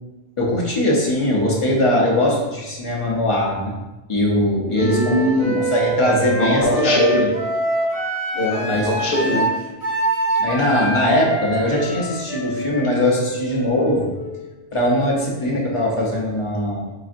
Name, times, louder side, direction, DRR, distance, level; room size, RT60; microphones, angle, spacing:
voice 1, 0.4-3.7 4.1-5.2 5.6-7.3 8.7-8.9 10.4-14.1 14.7-16.9, left 1 dB, 35° left, -3 dB, 0.6 m, -20 dB
Wind instrument woodwind instrument, 4.7-14.5, right 2 dB, 40° right, 0.7 m, -25 dB
voice 2, 4.8-5.7 6.4-7.3 8.3-9.5, left 1 dB, 70° left, 0 dB, 0.9 m, -21 dB
3.9 x 2.6 x 2.5 m, 1.1 s
omnidirectional pair, 1.1 m